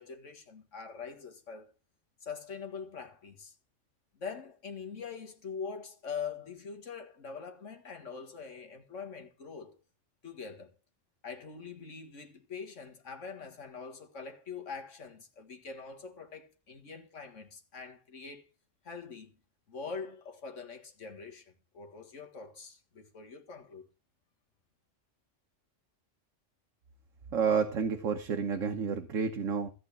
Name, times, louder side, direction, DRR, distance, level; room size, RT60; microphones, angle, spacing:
voice 1, 0.0-1.7 2.2-3.6 4.2-9.8 10.2-10.7 11.2-18.4 18.8-19.3 19.7-23.9, left 5 dB, 75° left, 2.1 m, -43 dB
voice 2, 27.3-29.7, right 6 dB, 85° right, 1.5 m, -30 dB
14.5 x 5.0 x 8.4 m
omnidirectional pair, 1.3 m